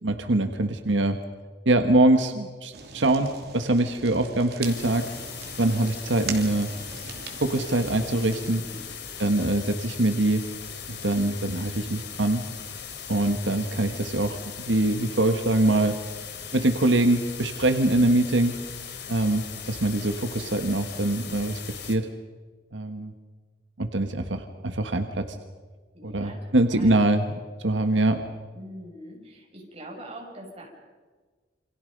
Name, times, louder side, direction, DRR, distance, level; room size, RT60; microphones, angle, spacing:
voice 1, 0.0-1.2 1.6-5.1 5.6-6.7 7.4-8.6 9.2-10.4 10.9-12.4 13.1-14.4 14.7-16.0 16.5-18.6 19.1-21.6 21.9-22.1 22.7-23.1 23.8-25.3 26.0-28.2, right 2 dB, 90° right, 6 dB, 1.6 m, -23 dB
Fire, 2.7-8.5, right 5 dB, 60° right, 3.2 m, -41 dB
sound 1, 4.6-22.0, left 7 dB, 65° left, 3.1 m, -39 dB
voice 2, 8.5-8.9 25.9-27.0 28.5-30.7, right 1 dB, 35° right, 0 dB, 6.6 m, -43 dB
28.5 x 26.0 x 5.4 m, 1.4 s
head